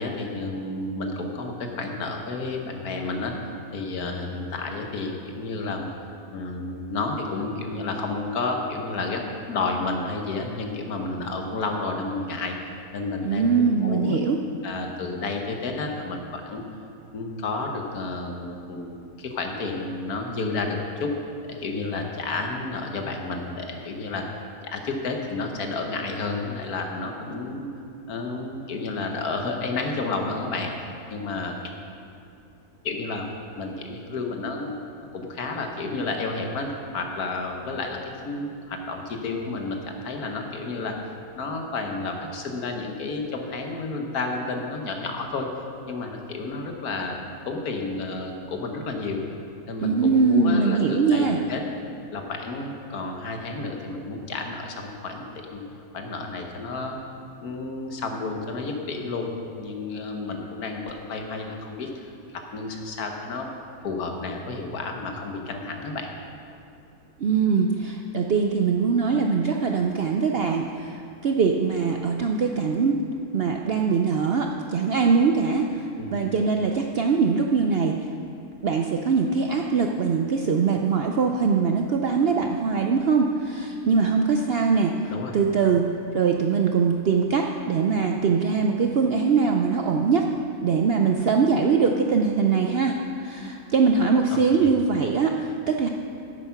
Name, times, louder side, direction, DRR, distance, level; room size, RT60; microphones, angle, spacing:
voice 1, 0.0-3.4 3.7-12.6 12.9-14.2 14.6-16.6 17.1-21.1 21.5-24.3 24.7-27.7 28.1-31.5 32.8-33.3 33.6-34.7 35.1-41.0 41.4-45.5 45.9-47.2 47.4-49.2 49.7-51.6 52.1-55.6 55.9-57.0 57.4-63.5 63.8-66.1 76.0-76.1 85.1-85.4 94.3-94.7, left 3 dB, 75° left, 3 dB, 1.6 m, -31 dB
voice 2, 13.2-14.4 49.8-51.4 67.2-73.0 73.3-78.0 78.6-84.9 85.3-85.9 86.1-90.3 90.6-93.0 93.2-95.9, right 5 dB, 65° right, 3 dB, 0.6 m, -22 dB
10.0 x 8.4 x 5.8 m, 2.5 s
omnidirectional pair, 1.6 m